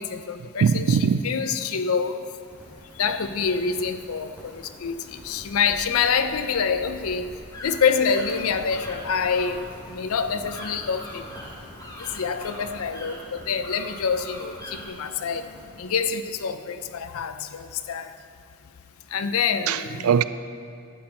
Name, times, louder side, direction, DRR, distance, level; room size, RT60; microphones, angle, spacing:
voice 1, 0.0-2.2 3.0-7.3 7.6-11.2 12.0-15.4 15.8-18.1 19.1-20.1, left 6 dB, 90° left, 0.5 m, -26 dB
voice 2, 0.6-1.2 19.7-20.2, right 6 dB, 90° right, 0.4 m, -21 dB
Rain, 2.0-16.4, equal, 5° right, 2.5 m, -46 dB
sound 1, 6.5-14.9, left 1 dB, 15° left, 1.2 m, -43 dB
12.0 x 7.9 x 4.2 m
head